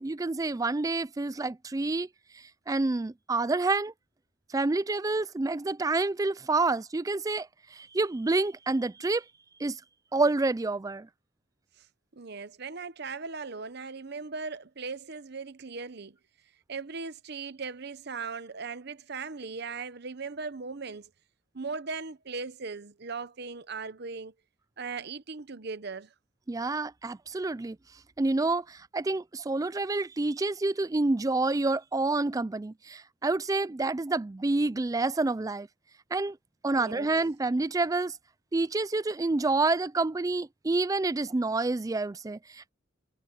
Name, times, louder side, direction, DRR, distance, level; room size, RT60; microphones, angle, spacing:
voice 1, 0.0-2.1 2.3-3.9 4.5-9.2 9.6-9.8 10.1-11.1 26.5-27.8 28.2-35.7 36.1-36.4 36.6-38.2 38.5-42.7, right 3 dB, 15° right, 0.4 m, -28 dB
voice 2, 12.1-16.2 16.7-21.1 21.5-24.3 24.8-26.1 36.7-37.1, right 4 dB, 55° right, 1.0 m, -38 dB
head